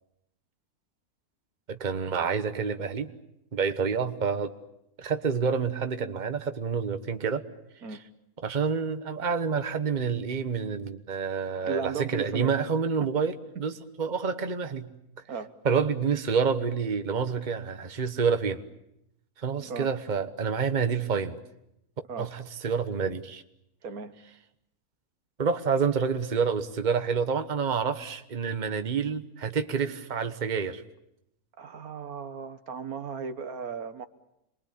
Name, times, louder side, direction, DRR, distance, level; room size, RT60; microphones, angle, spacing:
voice 1, 1.7-3.1 3.5-4.5 5.0-7.4 8.4-13.3 13.6-14.9 15.6-18.6 19.4-21.4 22.2-23.4 25.4-30.8, right 6 dB, 30° right, 8 dB, 1.3 m, -28 dB
voice 2, 11.6-12.5 13.0-13.1 13.6-13.7 15.3-15.6 19.6-19.9 22.1-22.4 23.8-24.2 31.6-34.1, right 5 dB, 70° right, 10 dB, 1.6 m, -35 dB
27.5 x 22.0 x 8.6 m, 0.82 s
omnidirectional pair, 1.6 m